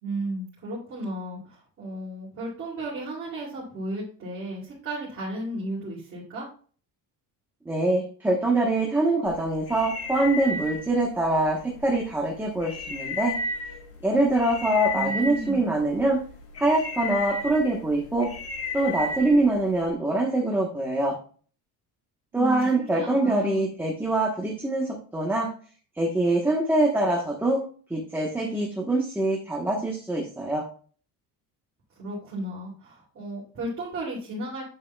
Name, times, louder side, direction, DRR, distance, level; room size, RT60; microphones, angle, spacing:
voice 1, 0.0-6.5 14.9-15.6 22.3-23.7 32.0-34.6, right 1 dB, 35° right, -6 dB, 2.7 m, -34 dB
voice 2, 7.7-13.4 14.0-16.2 16.6-18.3 18.7-21.2 22.3-25.5 26.0-27.6 27.9-30.6, right 2 dB, 5° right, -2 dB, 1.0 m, -24 dB
sound 1, 9.3-19.9, left 3 dB, 35° left, 1.5 m, -35 dB
8.9 x 7.1 x 2.3 m, 0.42 s
cardioid pair, 175°, 38 cm